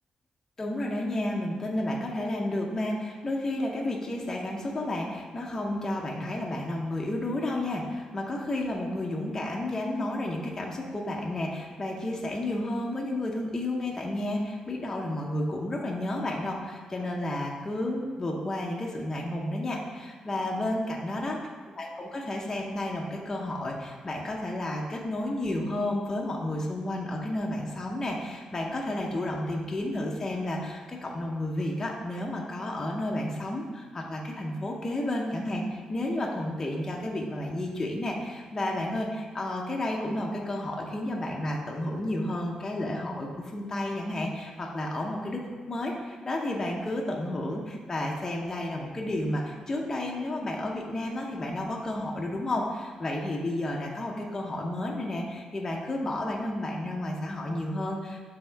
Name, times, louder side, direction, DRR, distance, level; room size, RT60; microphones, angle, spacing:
voice 1, 0.6-21.4 21.8-58.2, left 1 dB, 20° left, -1 dB, 0.5 m, -31 dB
6.6 x 3.4 x 4.4 m, 1.5 s
wide cardioid pair, 170°, 2 cm